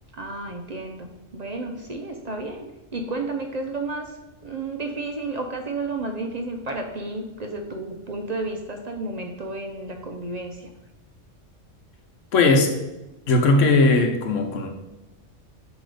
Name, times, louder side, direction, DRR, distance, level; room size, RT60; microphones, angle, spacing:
voice 1, 0.1-2.7 2.9-10.7, right 2 dB, 45° right, 4 dB, 0.6 m, -32 dB
voice 2, 12.3-12.8 13.3-14.7, left 2 dB, 80° left, 5 dB, 1.2 m, -18 dB
7.8 x 3.1 x 4.9 m, 1.0 s
omnidirectional pair, 1.3 m